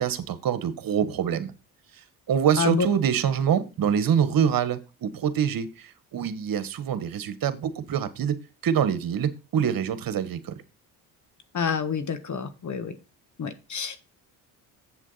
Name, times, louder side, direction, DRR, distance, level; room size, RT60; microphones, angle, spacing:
voice 1, 0.0-1.5 2.3-8.4 8.6-10.6, right 8 dB, 55° right, 12 dB, 1.5 m, -25 dB
voice 2, 11.5-12.9 13.4-14.0, left 6 dB, 45° left, 10 dB, 1.5 m, -27 dB
7.7 x 7.4 x 4.2 m, 0.29 s
supercardioid pair, 70°, 41 cm